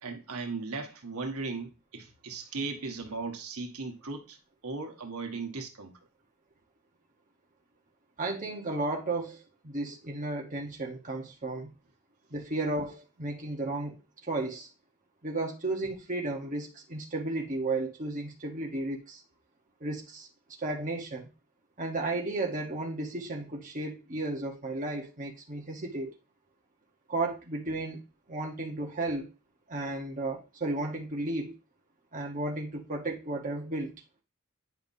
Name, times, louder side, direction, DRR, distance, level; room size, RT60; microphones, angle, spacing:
voice 1, 0.0-4.4 4.6-5.9, right 3 dB, 85° right, 1.2 m, -37 dB
voice 2, 8.2-11.7 12.3-14.0 14.2-14.7 15.2-19.2 19.8-20.3 20.6-21.3 21.8-26.1 27.1-28.0 28.3-29.3 29.7-31.6 32.1-33.9, right 2 dB, 35° right, 1.1 m, -33 dB
9.4 x 5.6 x 2.7 m
head